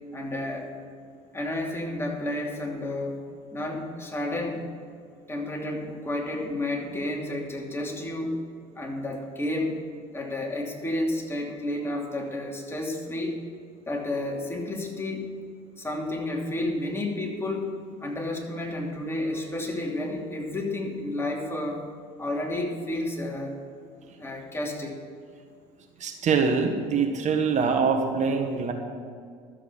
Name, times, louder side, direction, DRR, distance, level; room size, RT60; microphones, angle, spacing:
voice 1, 0.1-0.7 1.3-3.2 3.5-4.6 5.3-8.4 8.8-9.8 10.1-13.4 13.9-15.3 15.8-17.7 18.0-21.9 22.2-23.6 24.2-25.0, left 1 dB, 15° left, 0 dB, 2.8 m, -31 dB
voice 2, 26.0-28.7, right 5 dB, 45° right, 4 dB, 1.5 m, -24 dB
13.0 x 7.8 x 7.1 m, 2.2 s
hypercardioid pair, 75°, 16 cm